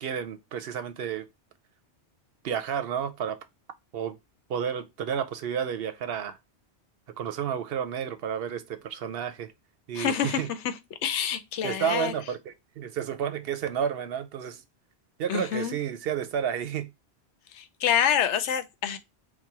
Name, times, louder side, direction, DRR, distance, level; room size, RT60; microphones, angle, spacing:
voice 1, 0.0-1.3 2.4-3.4 3.9-4.2 4.5-6.4 7.2-9.5 9.9-10.5 11.6-14.6 15.2-16.9, right 8 dB, 65° right, 0.7 m, -31 dB
voice 2, 9.9-10.7 11.0-12.1 15.3-15.8 17.5-19.0, left 8 dB, 85° left, 0.9 m, -27 dB
4.2 x 2.1 x 4.6 m
omnidirectional pair, 1.2 m